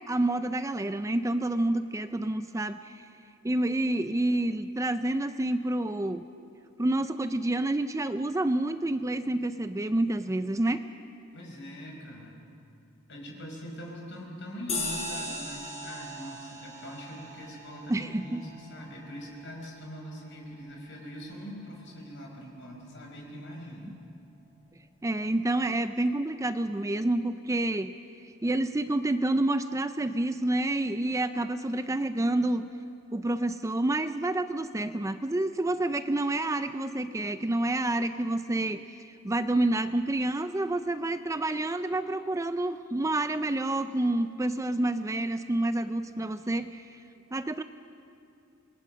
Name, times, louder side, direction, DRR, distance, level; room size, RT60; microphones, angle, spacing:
voice 1, 0.1-3.1 3.4-6.2 6.8-10.8 17.9-18.4 25.0-27.9 28.4-32.7 33.1-46.9 47.3-47.6, right 1 dB, 15° right, 11 dB, 0.5 m, -28 dB
voice 2, 11.3-12.4 13.1-24.0 47.1-47.2, equal, 60° left, 0 dB, 5.0 m, -42 dB
sound 1, 14.7-19.6, left 2 dB, 30° left, 5.6 m, -38 dB
27.0 x 21.5 x 6.3 m, 2.6 s
head